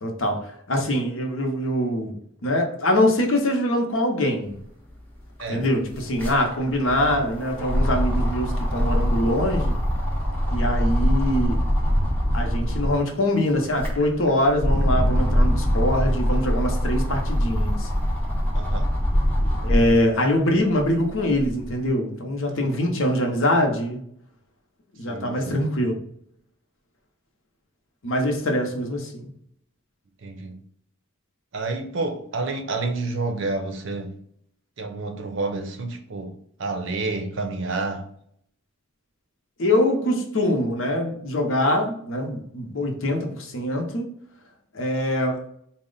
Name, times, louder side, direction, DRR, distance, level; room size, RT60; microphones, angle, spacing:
voice 1, 0.0-2.2 2.4-4.5 5.5-9.8 10.5-11.6 12.3-17.9 19.6-24.0 25.0-25.9 28.0-29.2 39.6-44.1 44.7-45.4, left 1 dB, 60° left, 0.8 m, -23 dB
sound 1, 4.9-5.0 5.2-13.0 13.5-20.0 20.5-21.7, equal, 10° left, 0.6 m, -23 dB
voice 2, 18.5-18.9 22.5-22.6 25.0-25.6 30.2-30.6 31.5-34.1 34.8-36.3 36.6-38.1, right 3 dB, 55° right, 0.5 m, -29 dB
4.2 x 2.1 x 3.8 m
head